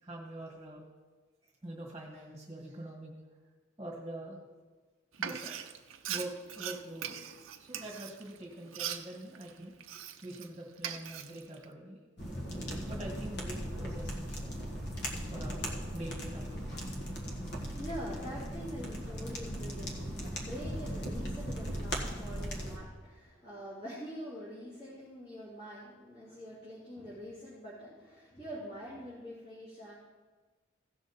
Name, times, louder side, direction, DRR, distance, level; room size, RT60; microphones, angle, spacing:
voice 1, 0.0-0.8 1.4-3.2 3.8-4.6 5.2-5.5 6.0-7.2 7.6-9.7 10.2-12.0 12.9-14.5 15.3-16.6, right 1 dB, 15° right, -3 dB, 1.6 m, -44 dB
Frying (food), 5.1-10.5 10.8-11.7, right 9 dB, 85° right, 0.6 m, -41 dB
sound 1, 12.2-22.8, equal, 55° left, 1.6 m, -38 dB
voice 2, 17.4-29.9, equal, 30° left, -10 dB, 3.0 m, -45 dB
16.5 x 6.3 x 4.1 m, 1.3 s
head